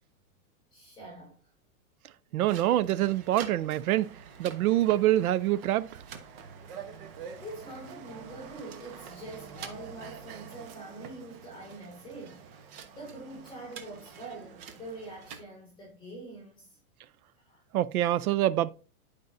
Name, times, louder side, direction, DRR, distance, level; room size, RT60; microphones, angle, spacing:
voice 1, 0.7-1.4 7.4-16.8 17.4-17.6, right 2 dB, 10° left, 3.3 m, -45 dB
voice 2, 2.3-4.1 4.4-5.9 17.7-18.7, right 13 dB, 85° right, 0.7 m, -25 dB
sound 1, 2.4-15.4, right 7 dB, 40° right, 1.2 m, -46 dB
10.5 x 5.3 x 2.6 m
supercardioid pair, 155°, 43 cm